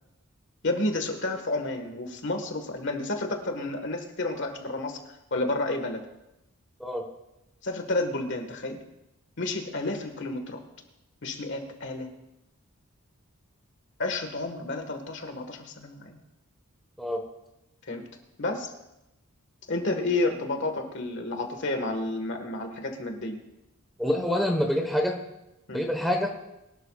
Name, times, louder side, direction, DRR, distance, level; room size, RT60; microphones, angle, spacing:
voice 1, 0.6-5.0 5.3-6.0 7.6-8.8 9.4-10.6 11.2-12.1 14.0-16.2 17.9-18.0 18.4-18.7 19.7-23.4 25.7-25.8, left 2 dB, 55° left, 5 dB, 1.7 m, -30 dB
voice 2, 24.0-25.2 25.7-26.3, left 1 dB, ahead, 1 dB, 1.3 m, -26 dB
22.5 x 12.0 x 2.5 m, 0.90 s
head